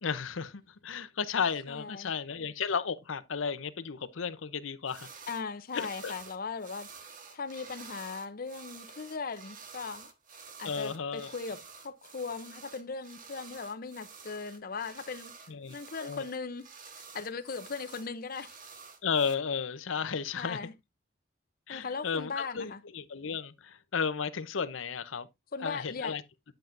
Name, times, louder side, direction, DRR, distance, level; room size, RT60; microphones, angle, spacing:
voice 1, 0.0-5.1 5.7-6.1 10.6-11.3 15.5-15.7 16.0-16.2 19.0-20.6 21.7-25.3 25.6-26.2, left 6 dB, 90° left, 0.7 m, -33 dB
voice 2, 1.7-2.1 5.3-6.9 7.3-10.1 10.6-15.3 15.7-16.7 16.9-18.6 20.4-20.7 21.7-22.8 25.5-26.2, left 4 dB, 50° left, 0.6 m, -38 dB
sound 1, 4.9-5.4 5.7-19.3, right 5 dB, 45° right, 1.3 m, -50 dB
9.0 x 7.9 x 2.5 m
head